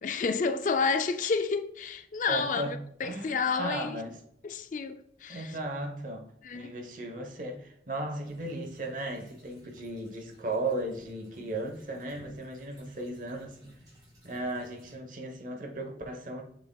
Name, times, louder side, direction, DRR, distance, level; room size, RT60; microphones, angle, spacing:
voice 1, 0.0-4.0 4.4-5.5 6.4-6.7, left 5 dB, 45° left, 0.4 m, -30 dB
voice 2, 2.3-2.7 3.0-4.2 5.3-13.8 14.2-16.4, right 2 dB, 45° right, 1.1 m, -36 dB
sound 1, 8.2-15.0, equal, 25° right, 2.3 m, -58 dB
6.9 x 5.8 x 2.3 m
head